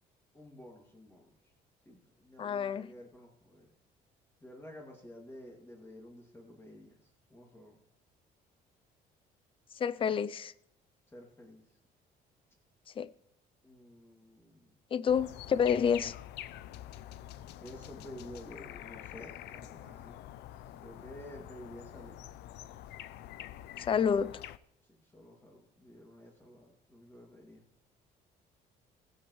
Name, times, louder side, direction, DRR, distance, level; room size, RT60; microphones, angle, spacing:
voice 1, 0.3-1.4 1.9-3.7 4.4-7.8 11.1-11.6 13.6-14.7 17.6-20.2 20.8-22.2 24.9-27.6, equal, 15° left, 2.4 m, -51 dB
voice 2, 2.4-2.9 9.7-10.5 13.0-13.1 14.9-16.1 23.8-24.3, left 7 dB, 30° left, 0.5 m, -29 dB
sound 1, 15.1-24.6, left 12 dB, 80° left, 0.6 m, -47 dB
20.0 x 7.9 x 3.2 m
cardioid pair, 110°, 17 cm